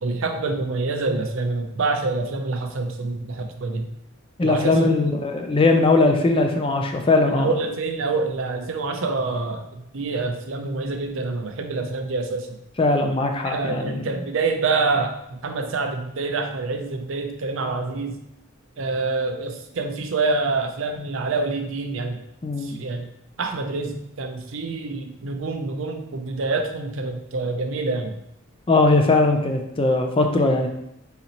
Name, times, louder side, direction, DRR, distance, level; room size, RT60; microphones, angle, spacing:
voice 1, 0.0-3.9 4.4-4.9 7.3-12.5 13.4-18.2 18.8-22.2 22.6-23.1 23.4-28.2, right 3 dB, 70° right, 5 dB, 0.5 m, -26 dB
voice 2, 4.4-7.5 12.8-14.0 22.4-22.8 28.7-30.7, left 2 dB, 25° left, 4 dB, 0.4 m, -20 dB
4.0 x 4.0 x 2.9 m, 0.80 s
head